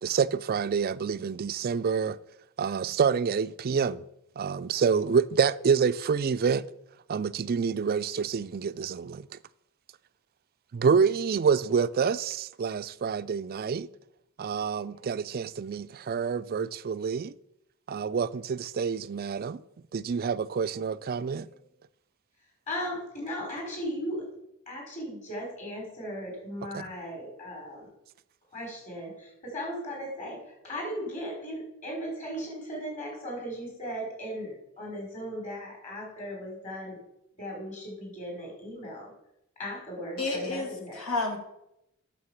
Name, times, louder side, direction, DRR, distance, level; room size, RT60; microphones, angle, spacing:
voice 1, 0.0-2.2 2.6-4.0 4.4-6.7 7.1-9.3 10.7-13.9 14.4-17.3 17.9-19.6 19.9-21.5 26.7-26.8, right 6 dB, 45° right, 0.4 m, -27 dB
voice 2, 22.7-24.2 24.7-27.9 28.5-37.0 37.4-39.1 39.6-41.0, equal, 35° left, 5.1 m, -37 dB
voice 3, 40.2-41.4, left 3 dB, 75° left, 2.6 m, -31 dB
9.6 x 6.7 x 7.2 m
head